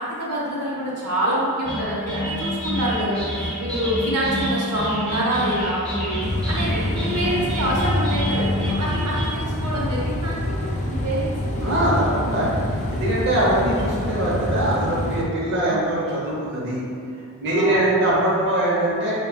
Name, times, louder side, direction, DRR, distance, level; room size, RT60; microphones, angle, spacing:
voice 1, 0.0-6.2 6.5-11.3 15.6-15.8 17.5-18.3, right 1 dB, 90° right, -5 dB, 1.0 m, -26 dB
sound 1, 1.6-9.3, equal, 5° left, 0.7 m, -28 dB
sound 2, 6.2-15.2, left 1 dB, 30° left, 0.4 m, -26 dB
voice 2, 11.6-12.6 12.9-16.8 17.4-19.1, right 1 dB, 50° right, -6 dB, 0.8 m, -22 dB
6.9 x 2.4 x 2.3 m, 2.5 s
head